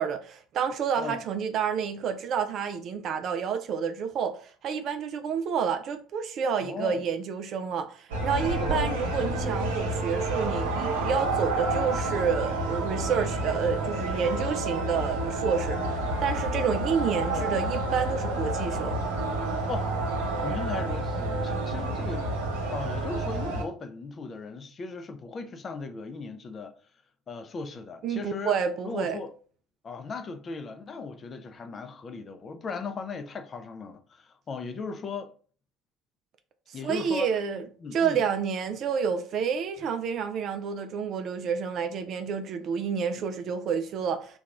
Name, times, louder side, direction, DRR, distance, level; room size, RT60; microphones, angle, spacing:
voice 1, 0.0-19.0 28.0-29.2 36.7-37.6 37.9-44.4, right 6 dB, 50° right, 0.3 m, -29 dB
voice 2, 6.6-7.0 8.6-8.9 17.3-17.6 19.7-20.0 20.4-26.7 27.3-28.5 28.8-29.3 29.8-35.3 36.7-37.3 37.8-38.2, left 4 dB, 35° left, 0.5 m, -37 dB
sound 1, 8.1-23.6, right 2 dB, 70° right, 0.7 m, -29 dB
2.8 x 2.2 x 3.4 m
figure-of-eight pair, 60°, 0 cm